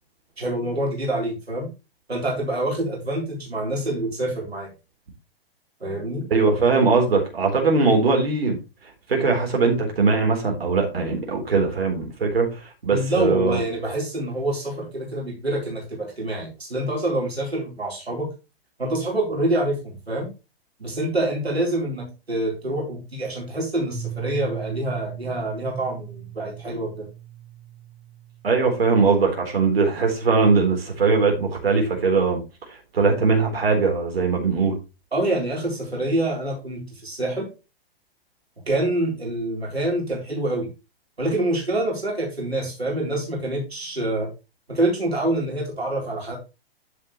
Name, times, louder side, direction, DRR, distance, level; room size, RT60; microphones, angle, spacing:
voice 1, 0.4-1.7 2.1-4.7 5.8-6.3 12.9-18.3 18.8-20.3 20.8-27.1 35.1-37.5 38.7-40.7 41.2-44.3 44.7-46.4, right 1 dB, 85° right, 4.1 m, -26 dB
voice 2, 6.3-8.6 9.1-13.6 28.4-32.4 32.7-34.7, right 4 dB, 70° right, 4.1 m, -20 dB
Piano, 23.9-29.5, right 11 dB, 20° right, 3.4 m, -38 dB
10.0 x 7.4 x 3.2 m
figure-of-eight pair, 115°, 31 cm